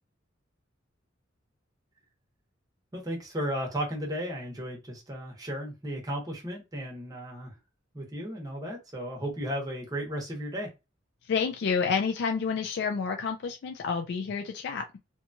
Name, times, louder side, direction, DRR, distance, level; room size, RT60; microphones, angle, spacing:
voice 1, 2.9-7.5 7.9-10.7, equal, 20° right, 0.8 m, -34 dB
voice 2, 11.3-15.0, left 5 dB, 60° left, 0.3 m, -29 dB
2.8 x 2.3 x 2.6 m
head